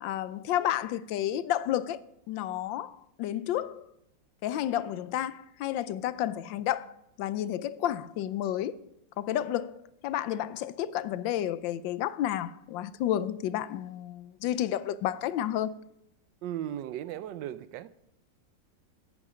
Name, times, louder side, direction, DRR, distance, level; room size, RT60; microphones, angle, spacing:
voice 1, 0.0-2.0 2.3-3.9 4.4-6.9 7.2-8.8 9.2-15.7, left 12 dB, 90° left, 1.3 m, -31 dB
voice 2, 16.4-17.9, right 11 dB, 80° right, 1.3 m, -36 dB
13.5 x 8.4 x 5.0 m
omnidirectional pair, 2.0 m